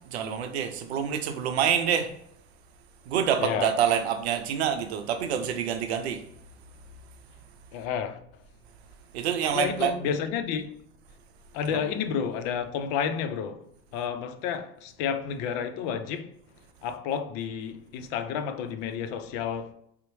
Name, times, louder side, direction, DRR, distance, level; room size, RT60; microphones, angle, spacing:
voice 1, 0.0-2.1 3.0-6.2 9.1-9.9 11.7-11.8, right 8 dB, 90° right, 0.6 m, -27 dB
voice 2, 3.4-3.7 7.7-8.2 9.5-10.7 11.5-13.6 13.9-16.3 16.8-19.7, left 7 dB, 70° left, 0.5 m, -30 dB
4.1 x 2.1 x 3.0 m
hypercardioid pair, 85°, 31 cm